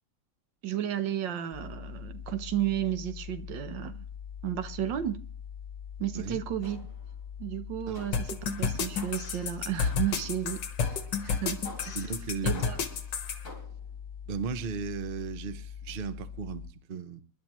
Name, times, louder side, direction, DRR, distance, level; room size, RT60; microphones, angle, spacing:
voice 1, 0.6-4.1 4.4-5.2 6.0-6.8 7.4-12.0 12.4-12.8, right 11 dB, 80° right, 1.6 m, -33 dB
sound 1, 1.5-16.7, left 8 dB, 20° right, 4.6 m, -43 dB
sound 2, 6.6-7.1 8.0-8.4 9.0-9.4 9.8-10.3 10.8-11.2 11.7-12.1 12.5-13.0 13.5-13.9, left 1 dB, 45° left, 5.0 m, -48 dB
sound 3, 8.1-13.4, left 6 dB, 70° left, 1.8 m, -30 dB
voice 2, 11.9-12.7 14.3-17.2, right 5 dB, 45° right, 0.7 m, -36 dB
26.5 x 11.0 x 3.1 m
omnidirectional pair, 2.0 m